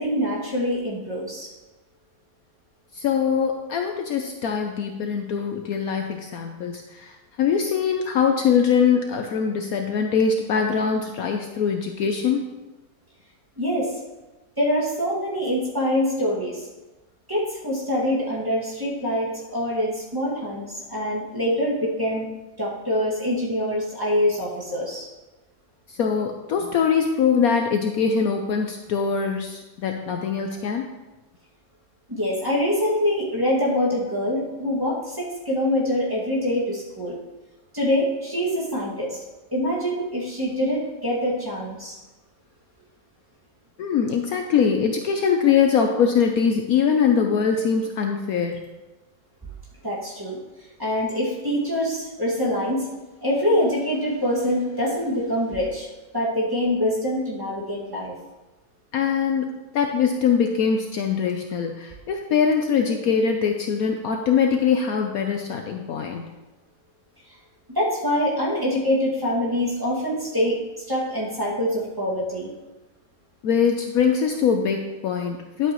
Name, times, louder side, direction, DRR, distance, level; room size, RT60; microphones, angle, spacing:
voice 1, 0.0-1.5 13.6-13.9 14.6-16.7 17.3-22.3 22.6-25.1 32.1-37.2 37.7-39.2 39.5-41.9 49.8-50.4 50.8-52.9 53.2-55.9 56.1-58.1 67.7-72.5, equal, 15° right, -6 dB, 2.0 m, -25 dB
voice 2, 2.9-12.5 25.9-30.9 43.8-48.6 58.9-66.3 73.4-75.7, left 6 dB, 65° left, 4 dB, 1.0 m, -22 dB
11.0 x 7.9 x 3.0 m, 1.1 s
omnidirectional pair, 1.8 m